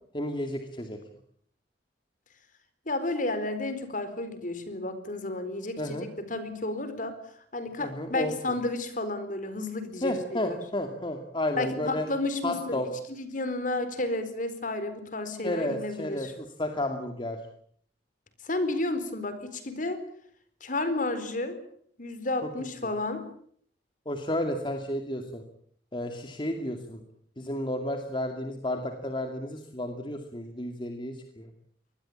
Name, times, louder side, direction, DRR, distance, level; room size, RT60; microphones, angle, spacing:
voice 1, 0.1-1.0 5.8-6.1 7.8-8.3 10.0-12.1 12.4-12.9 15.4-17.4 24.1-25.4 25.9-27.0 27.4-31.5, left 1 dB, 25° left, 5 dB, 2.3 m, -32 dB
voice 2, 2.9-7.1 7.5-10.6 11.5-16.3 18.4-20.0 20.6-21.6 22.0-23.2, left 2 dB, 45° left, 11 dB, 4.3 m, -32 dB
24.5 x 20.0 x 8.7 m, 0.63 s
head